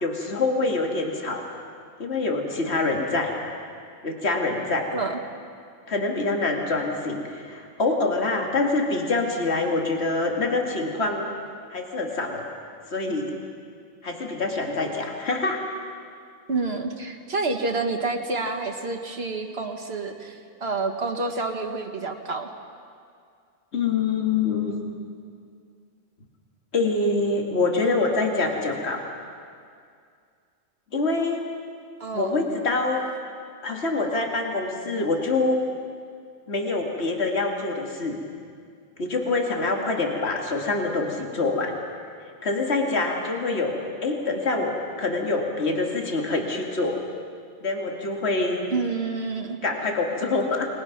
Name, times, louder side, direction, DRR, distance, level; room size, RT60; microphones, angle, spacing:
voice 1, 0.0-1.5 2.0-3.4 4.0-4.9 5.9-11.3 11.7-12.4 12.9-13.3 14.0-15.6 23.7-24.7 26.7-29.0 30.9-31.4 32.1-33.0 33.6-35.6 36.5-38.2 39.0-41.7 42.4-43.8 44.0-47.0 47.6-48.7 49.6-50.7, left 3 dB, 55° left, 1 dB, 2.4 m, -25 dB
voice 2, 16.5-22.5 32.0-32.3 48.7-49.6, right 3 dB, 50° right, 4 dB, 1.9 m, -28 dB
29.5 x 21.0 x 6.0 m, 2.2 s
omnidirectional pair, 1.3 m